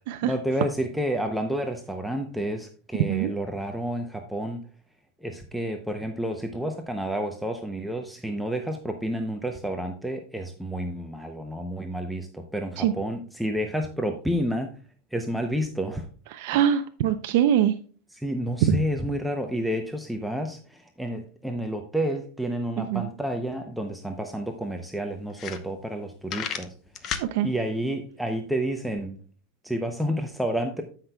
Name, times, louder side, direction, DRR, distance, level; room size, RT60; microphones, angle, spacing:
voice 1, 0.2-4.6 5.2-14.7 15.1-16.0 18.1-26.7 27.4-29.2 29.6-30.8, right 1 dB, ahead, 3 dB, 0.6 m, -30 dB
voice 2, 16.3-17.8 18.7-18.8 22.8-23.0 27.2-27.5, right 10 dB, 60° right, 8 dB, 0.5 m, -23 dB
sound 1, 23.9-24.0 24.3-24.4 24.9-25.0 25.3-26.0 26.3-27.3, left 8 dB, 35° left, 0.8 m, -32 dB
14.5 x 5.8 x 2.3 m, 0.42 s
supercardioid pair, 150°, 0 cm